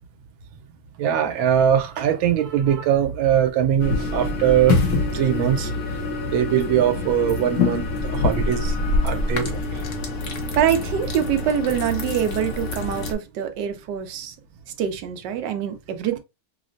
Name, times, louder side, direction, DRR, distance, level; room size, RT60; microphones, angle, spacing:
voice 1, 1.0-4.8 5.1-5.7 6.3-8.7 9.0-9.8, right 9 dB, 90° right, 1.5 m, -21 dB
sound 1, 3.8-13.1, left 3 dB, 60° left, 0.9 m, -25 dB
voice 2, 10.6-14.3 14.8-16.2, right 9 dB, 70° right, 1.1 m, -24 dB
5.6 x 2.1 x 2.5 m
omnidirectional pair, 2.2 m